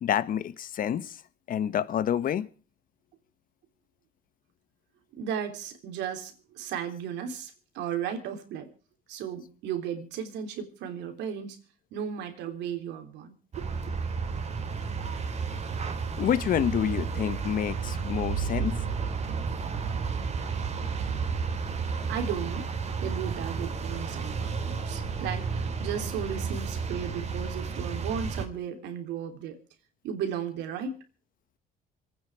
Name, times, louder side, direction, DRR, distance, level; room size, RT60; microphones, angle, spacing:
voice 1, 0.0-1.2 1.5-2.5 16.2-18.8, left 9 dB, 50° left, 16 dB, 1.2 m, -28 dB
voice 2, 5.2-8.7 9.1-11.6 11.9-13.9 22.1-22.7 23.0-29.6 30.0-31.0, right 8 dB, 75° right, 6 dB, 3.2 m, -35 dB
sound 1, 13.5-28.4, right 5 dB, 40° right, 3.1 m, -32 dB
26.0 x 9.4 x 4.9 m, 0.37 s
cardioid pair, 105°, 18 cm